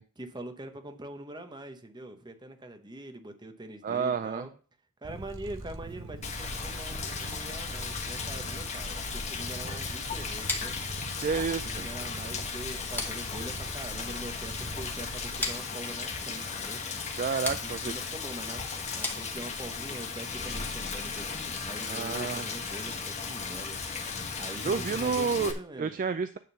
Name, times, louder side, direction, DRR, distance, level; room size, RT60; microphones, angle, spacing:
voice 1, 0.2-4.5 5.0-10.7 11.6-16.8 17.6-18.7 19.0-24.0 24.4-25.9, right 1 dB, 20° right, 7 dB, 0.9 m, -43 dB
voice 2, 3.8-4.5 11.2-11.9 17.2-17.9 21.9-22.4 24.6-26.4, right 5 dB, 35° right, 11 dB, 0.3 m, -30 dB
Purr, 5.0-15.5, right 2 dB, 60° right, 1.0 m, -43 dB
Rain, 6.2-25.5, left 5 dB, 30° left, 1.0 m, -36 dB
sound 1, 10.5-19.8, left 2 dB, 10° left, 1.3 m, -40 dB
9.4 x 3.6 x 6.9 m, 0.42 s
head